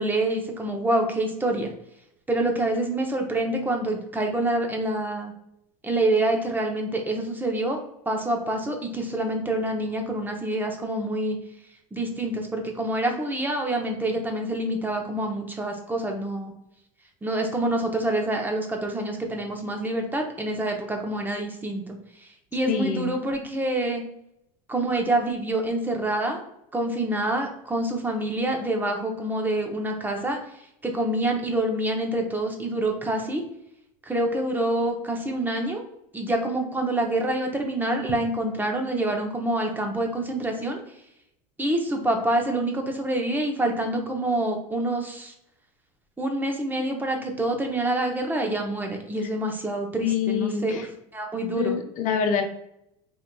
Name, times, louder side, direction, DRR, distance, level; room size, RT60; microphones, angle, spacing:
voice 1, 0.0-1.7 2.3-5.3 5.8-7.8 8.1-11.4 11.9-16.5 17.2-24.0 24.7-26.4 26.7-30.4 30.8-33.4 34.1-35.8 36.1-40.8 41.6-45.3 46.2-51.8, right 1 dB, 10° right, 3 dB, 0.6 m, -26 dB
voice 2, 22.7-23.1 50.0-50.8 51.5-52.4, left 7 dB, 45° left, 5 dB, 0.6 m, -26 dB
3.6 x 2.8 x 2.2 m, 0.78 s
supercardioid pair, 115°, 18 cm